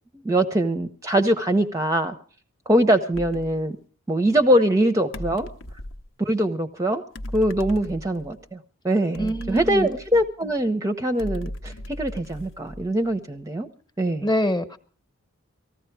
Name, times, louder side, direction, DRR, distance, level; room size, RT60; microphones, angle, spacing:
voice 1, 0.2-2.1 2.7-3.8 4.1-5.5 6.2-7.0 7.3-8.6 8.8-13.7 14.0-14.2, right 1 dB, 15° right, 7 dB, 0.6 m, -22 dB
sound 1, 3.1-3.6 5.1-6.1 7.1-8.4 9.1-10.5 11.2-13.1, left 1 dB, 70° left, 0.8 m, -37 dB
voice 2, 9.2-9.9 14.2-14.8, equal, 20° left, 10 dB, 1.0 m, -25 dB
19.0 x 14.5 x 4.5 m, 0.42 s
head